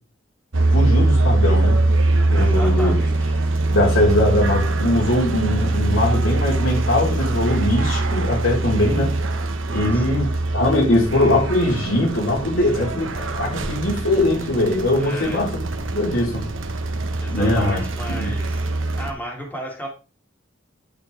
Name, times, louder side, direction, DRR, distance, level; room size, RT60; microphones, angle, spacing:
sound 1, 0.5-19.1, right 2 dB, 75° right, 1.0 m, -22 dB
voice 1, 0.7-1.8 2.3-3.0 3.7-9.2 9.7-15.6 15.9-16.5 17.3-17.8 18.1-18.3, left 1 dB, 75° left, 3.2 m, -21 dB
voice 2, 2.4-3.4 9.6-10.2 15.0-15.4 17.2-18.7 19.0-19.9, equal, 10° left, 2.1 m, -34 dB
10.5 x 4.5 x 3.3 m
head